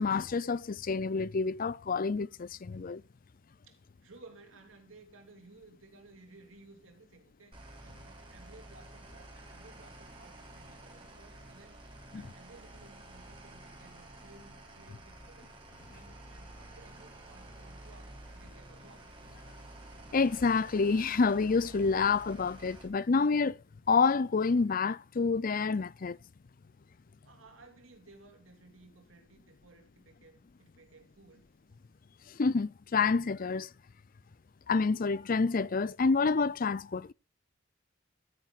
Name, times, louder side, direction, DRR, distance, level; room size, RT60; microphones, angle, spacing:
voice 1, 0.0-3.0 12.1-12.3 20.1-23.6 23.9-26.2 32.3-33.7 34.7-37.1, left 4 dB, 45° left, 0.5 m, -28 dB
voice 2, 3.7-7.6 7.8-11.8 12.1-15.5 15.9-19.1 27.2-31.4, right 3 dB, 85° right, 3.1 m, -57 dB
sound 1, 7.5-22.9, right 1 dB, 25° right, 3.8 m, -51 dB
15.0 x 9.4 x 2.5 m
head